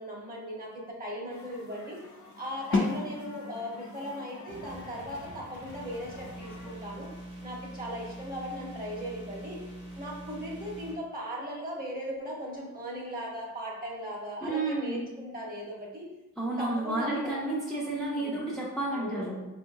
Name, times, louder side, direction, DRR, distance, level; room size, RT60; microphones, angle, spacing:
voice 1, 0.0-2.0 2.3-7.1 7.4-9.6 9.9-16.1 16.6-17.4 18.0-18.4 18.9-19.4, equal, 30° right, -3 dB, 1.3 m, -38 dB
sound 1, 1.3-6.7, left 3 dB, 75° left, 0.7 m, -51 dB
sound 2, 2.7-8.4, left 3 dB, 40° left, 0.7 m, -36 dB
sound 3, 4.5-10.9, right 1 dB, 85° right, 1.5 m, -44 dB
voice 2, 14.4-15.0 16.4-19.4, right 2 dB, ahead, -6 dB, 0.7 m, -31 dB
4.5 x 2.8 x 2.7 m, 1.0 s
cardioid pair, 85°, 30 cm